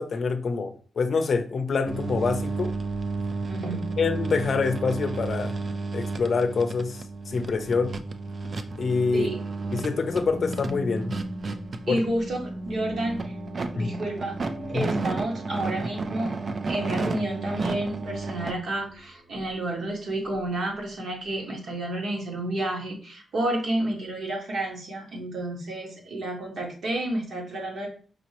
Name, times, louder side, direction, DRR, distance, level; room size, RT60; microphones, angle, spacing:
voice 1, 0.0-2.7 4.0-5.5 5.9-7.9 8.8-9.3 9.7-11.1 11.9-12.0 13.8-13.9 14.7-14.9, left 4 dB, 55° left, 8 dB, 0.6 m, -26 dB
sound 1, 1.9-18.5, right 3 dB, 45° right, 0.4 m, -32 dB
voice 2, 3.5-3.8 9.1-9.4 11.9-13.4 13.7-14.4 14.7-16.3 16.7-27.9, right 1 dB, 65° right, -1 dB, 1.5 m, -30 dB
sound 2, 9.5-19.7 20.3-20.6, equal, 5° right, 0.7 m, -41 dB
5.0 x 2.9 x 2.9 m, 0.41 s
wide cardioid pair, 115°, 0 cm